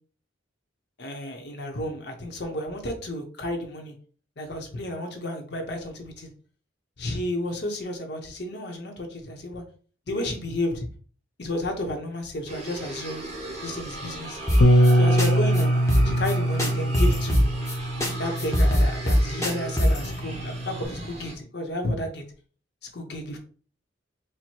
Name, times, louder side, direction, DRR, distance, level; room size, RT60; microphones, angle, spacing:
voice 1, 1.0-3.9 4.4-6.3 7.0-9.6 10.1-10.9 11.4-13.2 13.6-14.4 14.9-15.7 16.0-17.5 18.2-22.2 22.9-23.4, left 1 dB, 55° left, 3 dB, 0.9 m, -32 dB
sound 1, 12.5-21.4, right 2 dB, 35° right, 1.4 m, -37 dB
sound 2, 14.5-14.9 15.2-15.3 15.5-15.6 15.9-16.3 16.6-17.7 18.0-18.1 18.4-20.1, equal, 15° left, 0.9 m, -21 dB
Bass guitar, 14.6-20.8, equal, 75° left, 0.4 m, -23 dB
4.5 x 2.2 x 4.3 m, 0.42 s
head